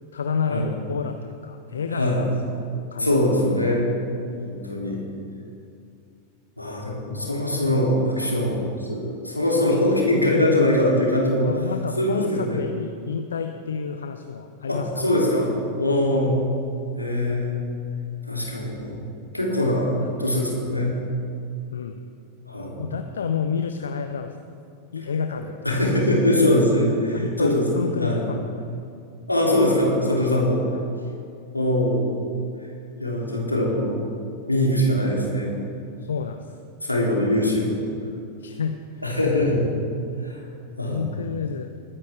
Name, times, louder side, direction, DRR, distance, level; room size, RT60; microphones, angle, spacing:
voice 1, 0.1-2.3 2.7-3.4 7.2-7.3 11.4-14.9 16.1-16.3 20.0-20.1 21.7-22.0 22.8-24.4 24.9-25.8 27.1-28.5 30.7-30.8 33.5-33.6 36.0-36.6 38.4-39.0 39.4-39.6 40.9-41.7, left 6 dB, 70° left, 7 dB, 0.6 m, -30 dB
voice 2, 1.9-2.2 3.0-3.9 4.4-5.0 6.6-11.5 12.0-12.6 14.7-15.5 15.8-16.5 17.0-17.6 18.2-19.0 19.3-21.0 22.5-22.9 25.6-27.6 28.0-28.2 29.3-30.6 31.5-32.1 33.0-34.0 34.5-35.6 36.8-37.7 39.0-39.6 40.2-40.4 40.8-41.1, left 1 dB, 85° left, -3 dB, 2.7 m, -22 dB
21.0 x 9.7 x 3.4 m, 2.5 s
figure-of-eight pair, 90°, 0 cm